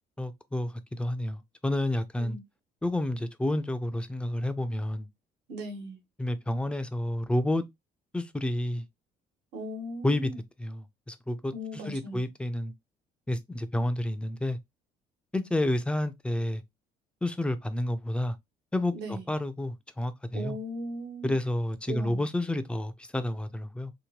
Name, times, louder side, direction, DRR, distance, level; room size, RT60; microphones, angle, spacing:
voice 1, 0.2-2.4 2.8-5.1 6.2-7.6 8.1-8.9 10.0-10.3 10.6-12.7 13.3-14.6 15.3-16.6 17.2-18.4 18.7-20.6 21.2-23.9, left 1 dB, 5° left, 0.3 m, -30 dB
voice 2, 5.5-6.0 9.5-10.4 11.5-12.2 18.9-19.2 20.3-21.3 21.9-22.3, equal, 80° right, 1.3 m, -38 dB
2.9 x 2.1 x 2.9 m
cardioid pair, 110°, 17 cm